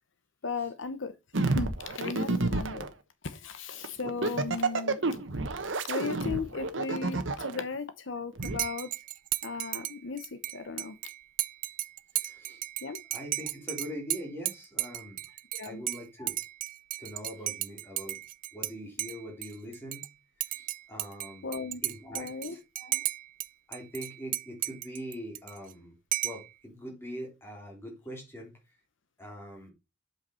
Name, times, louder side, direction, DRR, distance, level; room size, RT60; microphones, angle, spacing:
voice 1, 0.4-2.9 3.2-5.0 5.9-8.9 9.4-11.0 12.8-13.0 15.5-15.8 21.4-21.8 22.1-22.6, left 4 dB, 70° left, 0.8 m, -36 dB
sound 1, 1.3-2.9 3.8-7.6 8.4-8.6, right 3 dB, 70° right, 1.1 m, -29 dB
Dishes pots and pans / Cutlery silverware / Chink clink, 8.4-18.7 19.0-20.1 20.4-23.5 23.7-25.7 26.1-26.5, right 15 dB, 45° right, 0.4 m, -35 dB
voice 2, 12.2-12.6 13.1-15.2 15.6-16.4 17.0-18.2 18.5-20.1 20.5-21.5 21.8-23.1 23.7-26.0 26.2-28.5 29.2-29.7, equal, 10° left, 3.2 m, -42 dB
7.8 x 5.9 x 4.3 m
head